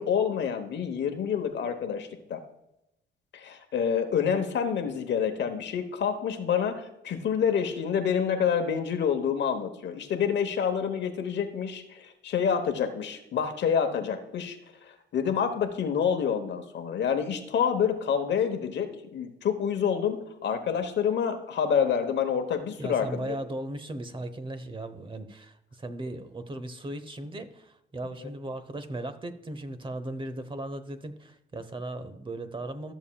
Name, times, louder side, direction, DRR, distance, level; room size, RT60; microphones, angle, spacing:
voice 1, 0.0-2.4 3.3-14.6 14.8-23.3 28.2-28.3, left 7 dB, 65° left, 6 dB, 1.1 m, -28 dB
voice 2, 22.8-32.9, right 1 dB, 25° right, 11 dB, 1.0 m, -37 dB
13.5 x 7.0 x 2.3 m, 0.87 s
cardioid pair, 90°, 20 cm